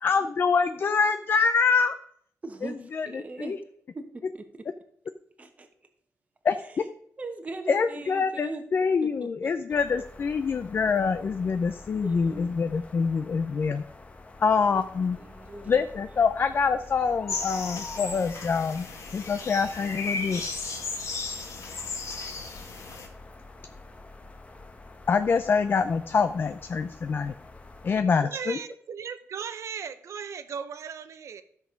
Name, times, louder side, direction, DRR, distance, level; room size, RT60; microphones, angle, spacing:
voice 1, 0.0-1.9 2.6-3.6 6.4-6.8 7.7-13.8 14.4-15.2 15.7-18.9 19.1-20.4 25.1-27.3 27.8-28.6, left 5 dB, 40° left, 10 dB, 0.5 m, -25 dB
voice 2, 2.4-3.6 3.9-4.6 5.4-5.7 6.6-6.7 7.2-8.6 9.0-9.5 12.0-12.5 14.7-14.9 15.2-15.8, right 2 dB, 25° right, 5 dB, 1.1 m, -40 dB
sound 1, 9.7-28.0, left 3 dB, 25° left, 0.9 m, -47 dB
sound 2, 17.3-23.1, left 4 dB, 70° left, 2.1 m, -35 dB
voice 3, 28.2-31.4, right 7 dB, 65° right, 11 dB, 0.8 m, -37 dB
13.0 x 6.2 x 5.1 m, 0.65 s
wide cardioid pair, 140°, 6 cm